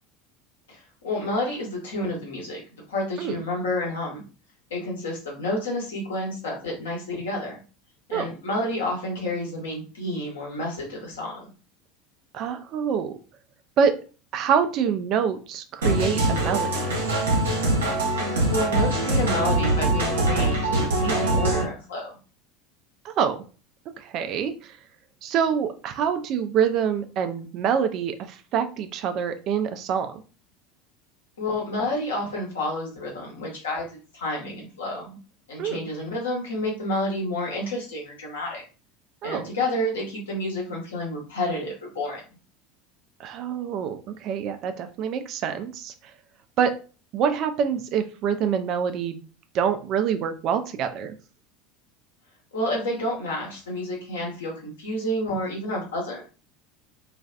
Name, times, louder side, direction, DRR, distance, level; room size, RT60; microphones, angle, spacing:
voice 1, 0.7-2.6 2.9-4.2 4.7-7.6 8.1-11.5 18.2-22.1 31.4-33.8 34.1-35.2 35.5-38.6 39.2-42.2 52.5-56.2, left 1 dB, 70° left, -2 dB, 1.0 m, -29 dB
voice 2, 12.3-13.1 13.8-14.0 14.3-16.9 23.0-23.4 24.0-24.8 25.2-30.1 35.6-35.8 39.2-39.4 43.2-45.9 46.6-46.7 47.1-49.2 49.5-51.1, right 7 dB, 45° right, 8 dB, 0.3 m, -26 dB
sound 1, 15.8-21.6, right 1 dB, 75° right, 0.7 m, -23 dB
2.4 x 2.3 x 2.2 m, 0.35 s
figure-of-eight pair, 75°, 0 cm